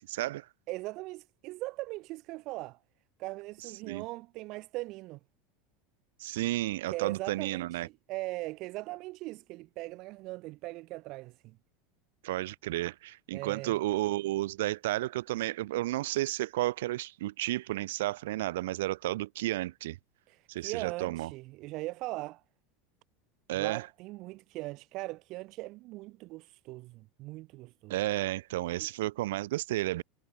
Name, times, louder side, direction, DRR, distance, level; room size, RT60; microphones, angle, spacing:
voice 1, 0.0-0.5 3.8-4.0 6.2-7.9 12.2-20.0 20.5-21.3 23.5-23.9 27.9-30.0, right 16 dB, 85° right, 1.7 m, -32 dB
voice 2, 0.7-2.8 3.2-5.2 6.9-11.6 13.3-13.8 20.3-22.4 23.5-28.0 28.8-28.9, right 20 dB, 50° right, 1.7 m, -40 dB
supercardioid pair, 135°, 0 cm